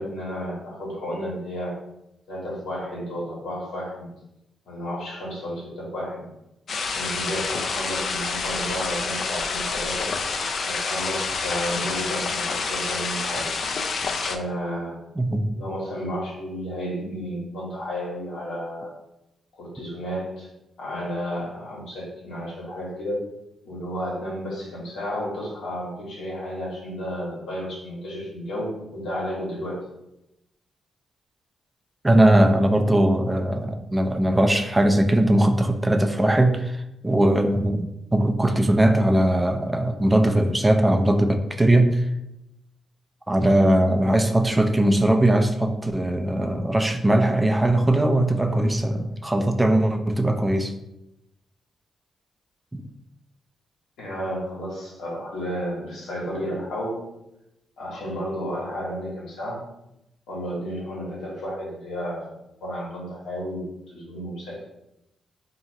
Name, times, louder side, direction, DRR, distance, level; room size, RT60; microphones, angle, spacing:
voice 1, 0.0-1.8 2.3-4.1 4.6-6.2 6.9-10.1 10.6-13.5 14.3-15.0 15.5-18.9 19.5-20.5 20.8-23.2 23.6-29.8 54.0-57.1 57.8-59.6 60.3-62.3 62.6-64.7, equal, 85° left, -4 dB, 1.4 m, -32 dB
sound 1, 6.7-14.4, left 4 dB, 60° left, 0.4 m, -28 dB
voice 2, 15.2-15.5 32.0-42.1 43.3-50.7 52.7-52.8, right 1 dB, 15° right, 5 dB, 0.4 m, -20 dB
2.8 x 2.4 x 4.0 m, 0.88 s
cardioid pair, 65°, 0 cm